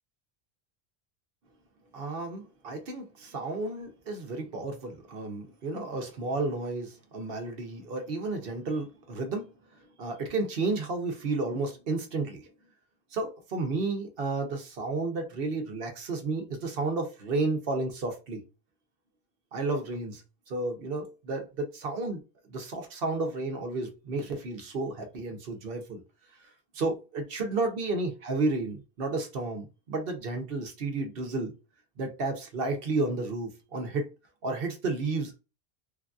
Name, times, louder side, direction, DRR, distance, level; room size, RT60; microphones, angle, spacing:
voice 1, 1.9-9.4 10.0-12.5 13.1-18.4 19.5-20.2 20.5-22.2 22.5-26.0 26.7-31.5 32.0-34.1 34.4-35.4, right 3 dB, 65° right, 0.9 m, -32 dB
3.2 x 2.5 x 2.3 m
omnidirectional pair, 1.1 m